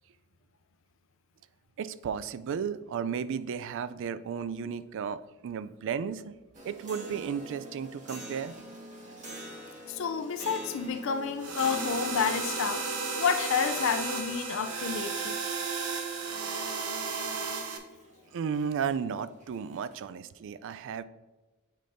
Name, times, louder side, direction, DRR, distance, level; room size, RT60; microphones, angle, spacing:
voice 1, 1.8-6.4 6.6-8.5 18.3-21.0, right 7 dB, 60° right, 14 dB, 0.3 m, -34 dB
sound 1, 6.5-20.0, right 1 dB, 35° right, 1.4 m, -46 dB
voice 2, 9.9-12.8 13.2-15.4, left 6 dB, 65° left, 8 dB, 0.4 m, -30 dB
sound 2, 11.4-17.8, right 4 dB, 90° right, 0.9 m, -33 dB
7.5 x 5.0 x 2.6 m, 1.2 s
head